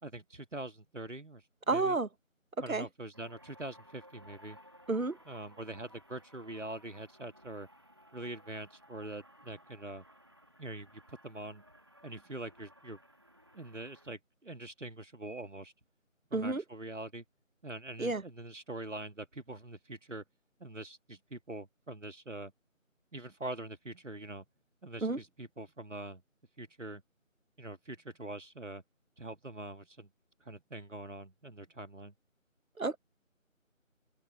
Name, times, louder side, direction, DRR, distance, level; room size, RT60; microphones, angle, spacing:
voice 1, 0.0-2.0 2.6-4.6 5.3-7.7 8.1-10.0 10.6-11.6 12.0-13.0 13.5-15.7 16.3-17.2 17.6-20.2 20.6-22.5 23.1-24.4 24.8-26.2 26.6-27.0 27.6-28.8 29.2-30.1 30.5-32.1, right 2 dB, 65° right, 2.0 m, -44 dB
voice 2, 1.7-2.1 2.7-2.9 4.9-5.2 16.3-16.6 18.0-18.2 25.0-25.2 32.8-33.0, right 3 dB, 85° right, 1.3 m, -30 dB
sound 1, 3.1-14.1, equal, 20° right, 1.5 m, -59 dB
open air
figure-of-eight pair, 170°, 40 cm